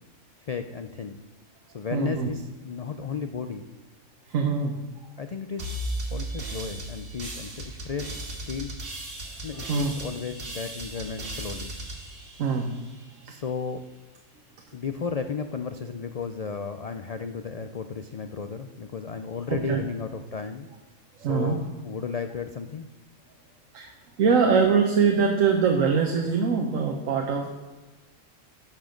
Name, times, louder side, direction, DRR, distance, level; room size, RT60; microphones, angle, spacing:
voice 1, 0.4-1.2 1.7-3.7 5.2-5.8 6.1-8.7 9.4-11.8 13.2-13.9 14.7-20.7 21.2-22.9, left 5 dB, 70° left, 8 dB, 0.3 m, -34 dB
voice 2, 1.9-2.3 4.3-4.8 6.3-6.4 9.7-9.9 12.4-12.7 19.5-19.8 21.2-21.6 23.7-23.9 24.2-27.5, right 5 dB, 80° right, 3 dB, 1.3 m, -23 dB
sound 1, 5.6-13.1, right 1 dB, 45° right, 1.8 m, -36 dB
10.5 x 6.1 x 5.1 m, 1.2 s
omnidirectional pair, 1.3 m